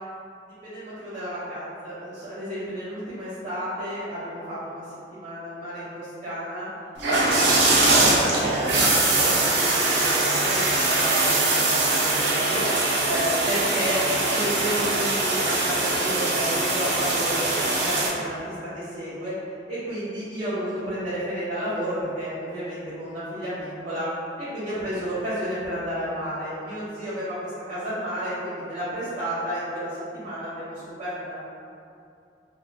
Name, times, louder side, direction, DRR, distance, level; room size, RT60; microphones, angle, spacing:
voice 1, 0.6-4.8 5.1-6.7 7.0-12.7 13.0-19.3 19.7-24.1 24.4-31.3, equal, 40° right, -15 dB, 1.0 m, -31 dB
sound 1, 7.0-18.1, right 2 dB, 70° right, 0.6 m, -22 dB
2.9 x 2.4 x 3.8 m, 2.5 s
head